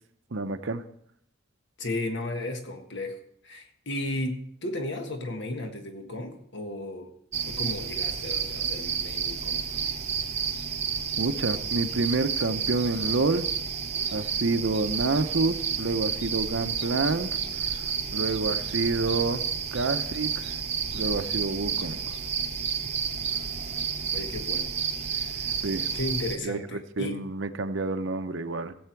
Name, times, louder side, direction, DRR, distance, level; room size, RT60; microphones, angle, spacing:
voice 1, 0.3-0.8 11.2-13.5 14.1-17.4 18.1-19.5 19.7-20.6 20.9-22.0 25.6-25.9 26.4-28.7, right 3 dB, 65° right, 10 dB, 0.8 m, -28 dB
voice 2, 1.8-3.2 3.4-7.1 7.4-9.6 24.1-24.7 25.1-25.5 25.9-27.2, left 1 dB, 60° left, 5 dB, 1.6 m, -34 dB
sound 1, 7.3-26.4, right 6 dB, 30° right, 0.9 m, -30 dB
16.5 x 7.9 x 4.6 m, 0.71 s
head